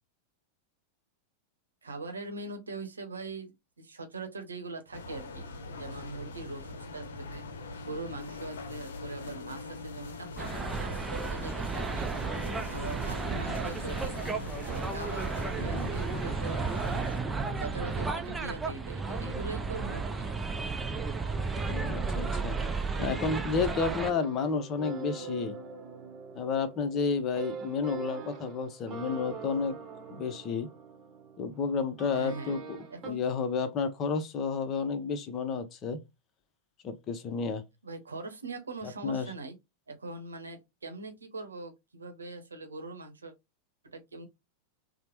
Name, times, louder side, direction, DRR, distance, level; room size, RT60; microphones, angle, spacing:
voice 1, 1.8-5.5 5.8-7.5 7.9-10.5 10.8-12.1 12.7-14.2 14.6-17.1 17.6-20.3 32.1-32.6 32.9-33.2 37.8-39.5 39.9-43.3 43.9-44.3, right 3 dB, 85° right, 0.7 m, -41 dB
sound 1, 4.9-17.2, left 3 dB, 70° left, 0.7 m, -42 dB
sound 2, 10.4-24.1, right 4 dB, 15° right, 0.4 m, -33 dB
voice 2, 15.6-15.9 21.6-22.6 23.0-25.6 26.3-29.8 30.1-30.7 31.4-32.6 33.0-36.0 36.8-37.6 39.0-39.3, left 5 dB, 35° left, 0.7 m, -31 dB
sound 3, 24.1-33.1, right 5 dB, 35° right, 0.8 m, -43 dB
3.1 x 2.0 x 2.9 m
figure-of-eight pair, 90°, 0 cm